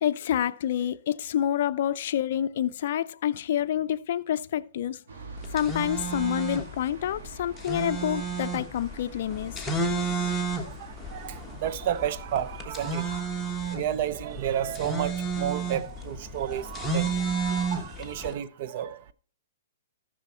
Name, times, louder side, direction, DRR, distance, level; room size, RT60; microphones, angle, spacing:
voice 1, 0.0-5.0 5.5-9.7, left 10 dB, 55° left, 0.4 m, -28 dB
sound 1, 5.1-16.6, right 3 dB, 70° right, 2.6 m, -48 dB
sound 2, 5.4-18.3, right 4 dB, 5° left, 1.3 m, -32 dB
voice 2, 10.6-19.1, right 10 dB, 50° right, 0.6 m, -32 dB
13.5 x 6.2 x 4.3 m
hypercardioid pair, 135°, 0 cm